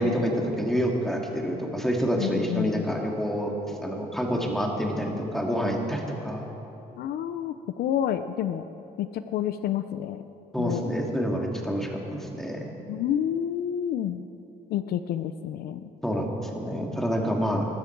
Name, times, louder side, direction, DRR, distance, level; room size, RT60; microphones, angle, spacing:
voice 1, 0.0-6.4 10.5-12.7 16.0-17.7, equal, ahead, 0 dB, 2.4 m, -27 dB
voice 2, 2.2-3.0 7.0-8.7 9.0-10.2 10.6-10.8 12.9-14.2 14.7-15.9, left 10 dB, 65° left, 11 dB, 0.6 m, -29 dB
20.5 x 12.5 x 4.6 m, 2.9 s
cardioid pair, 110°, 17 cm